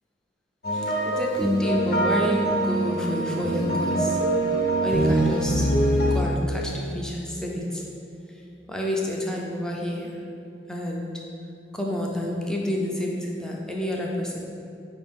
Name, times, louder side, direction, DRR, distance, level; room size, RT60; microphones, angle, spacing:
sound 1, 0.6-6.2, right 1 dB, 60° left, 0.7 m, -23 dB
voice 1, 0.7-4.2 4.8-5.7 6.1-7.8 8.7-10.1 10.7-11.1 11.7-14.4, left 1 dB, 5° left, -2 dB, 0.4 m, -29 dB
5.0 x 2.7 x 3.5 m, 2.7 s
head